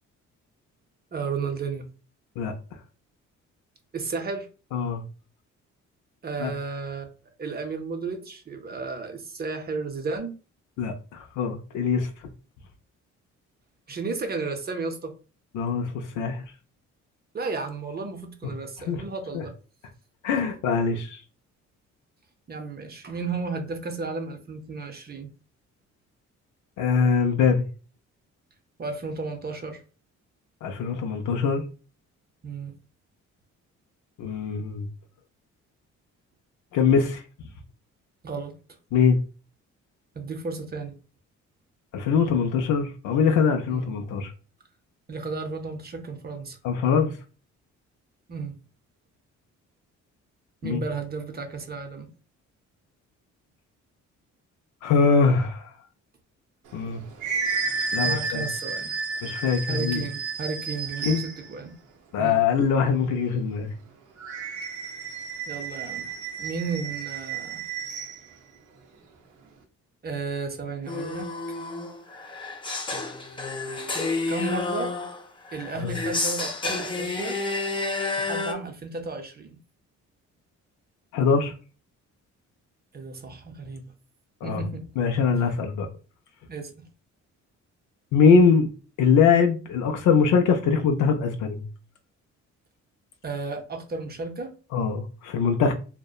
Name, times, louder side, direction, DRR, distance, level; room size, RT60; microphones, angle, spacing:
voice 1, 1.1-1.9 3.9-4.5 6.2-7.1 7.4-10.3 13.9-15.1 17.3-19.5 22.5-25.3 28.8-29.8 32.4-32.7 38.2-38.5 40.1-40.9 43.7-44.0 45.1-46.6 48.3-48.6 50.6-52.1 58.0-58.9 59.7-61.7 62.2-62.4 65.5-66.1 66.4-67.6 70.0-71.3 74.3-74.9 75.5-77.4 78.2-79.6 82.9-83.8 84.4-84.8 86.5-86.9 93.2-94.5, right 4 dB, 35° right, 0.5 m, -33 dB
voice 2, 4.7-5.0 6.4-6.5 10.8-12.1 15.5-16.4 18.9-19.0 19.3-19.4 20.2-21.2 26.8-27.6 30.6-31.6 34.2-34.9 36.7-37.2 38.9-39.2 41.9-44.3 46.6-47.2 50.6-50.8 54.8-55.7 56.7-57.0 57.9-58.4 59.2-60.0 61.0-61.2 62.1-63.7 75.8-76.0 81.1-81.5 84.4-84.6 85.0-85.9 88.1-88.7 89.0-91.6 94.7-95.7, left 5 dB, 80° left, 0.5 m, -22 dB
sound 1, 56.7-61.5 64.2-68.2, right 5 dB, 80° right, 0.6 m, -32 dB
sound 2, 70.9-78.5, left 3 dB, 15° left, 0.4 m, -30 dB
2.7 x 2.1 x 2.3 m
cardioid pair, 90°, 30 cm